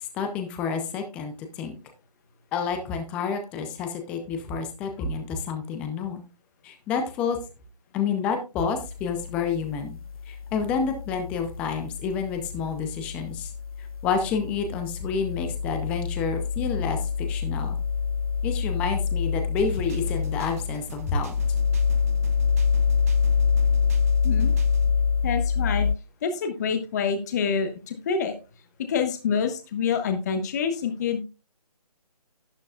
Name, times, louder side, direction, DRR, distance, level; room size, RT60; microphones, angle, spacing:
voice 1, 0.1-1.7 2.5-6.2 6.6-7.4 7.9-10.0 10.3-13.5 14.0-17.0 17.3-17.8 18.4-21.3, left 5 dB, 5° left, 6 dB, 0.5 m, -29 dB
sound 1, 8.9-26.0, left 6 dB, 65° left, 0.4 m, -26 dB
sound 2, 19.6-24.9, right 2 dB, 25° right, 0.9 m, -44 dB
voice 2, 25.2-25.9 26.2-28.3 28.9-31.2, left 6 dB, 25° left, 7 dB, 1.0 m, -26 dB
11.5 x 10.5 x 2.4 m, 0.30 s
figure-of-eight pair, 155°, 20 cm